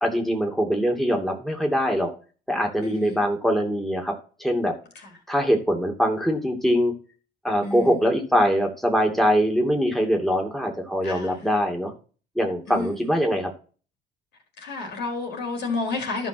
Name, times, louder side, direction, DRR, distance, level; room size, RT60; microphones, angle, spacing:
voice 1, 0.0-2.1 2.5-4.1 4.4-4.7 5.3-6.9 7.4-11.9 12.4-13.5, equal, ahead, 2.6 m, -23 dB
voice 2, 2.8-3.2 7.6-7.9 11.0-11.3 12.7-12.9 14.6-16.3, left 3 dB, 70° left, 4.6 m, -30 dB
12.0 x 5.6 x 6.1 m
supercardioid pair, 80°, 18 cm